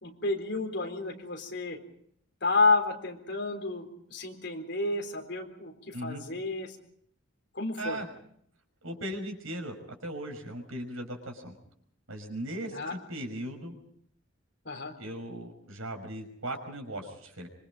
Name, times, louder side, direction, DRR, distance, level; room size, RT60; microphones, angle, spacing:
voice 1, 0.0-1.8 2.4-6.8 7.5-8.0 12.7-12.9 14.6-14.9, left 3 dB, 55° left, 4 dB, 4.0 m, -30 dB
voice 2, 5.9-6.2 7.8-8.1 8.8-9.7 10.0-11.5 12.1-13.7 15.0-17.5, right 1 dB, 85° right, 4 dB, 5.7 m, -38 dB
26.0 x 24.0 x 5.1 m, 0.68 s
head